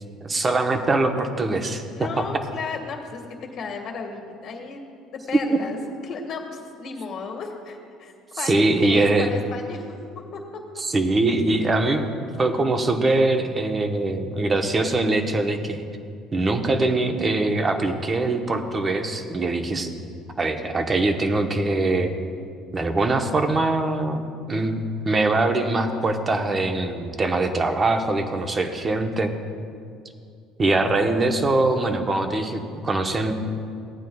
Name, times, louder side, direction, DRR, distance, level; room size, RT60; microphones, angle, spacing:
voice 1, 0.2-2.1 5.5-5.6 8.4-9.3 10.8-15.8 16.3-19.9 20.4-22.1 22.7-24.2 24.5-29.4 30.6-33.3, right 2 dB, 25° right, 5 dB, 0.9 m, -22 dB
voice 2, 1.9-3.2 3.5-4.9 5.3-5.8 6.0-10.0 10.3-10.4 28.6-29.0, left 4 dB, 55° left, 1 dB, 1.8 m, -34 dB
17.0 x 9.1 x 2.3 m, 2.3 s
cardioid pair, 110°, 0 cm